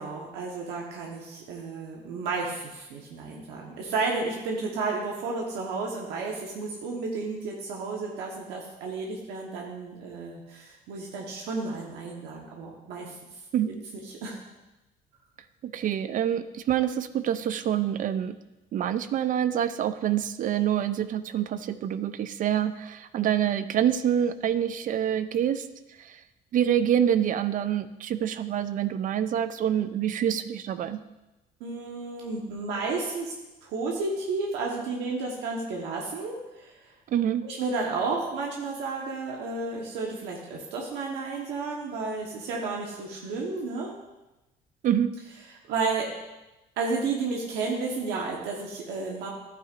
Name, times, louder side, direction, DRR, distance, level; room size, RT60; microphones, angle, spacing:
voice 1, 0.0-13.2 14.0-14.4 31.6-33.3 33.6-36.7 37.4-43.9 45.5-46.1 46.8-49.3, right 4 dB, 90° right, -1 dB, 1.2 m, -32 dB
voice 2, 15.6-18.4 18.7-25.7 26.0-26.2 26.5-31.0 37.1-37.4 44.8-45.1, right 10 dB, 50° right, 12 dB, 0.5 m, -26 dB
11.5 x 8.9 x 2.5 m, 1.0 s
cardioid pair, 110°, 17 cm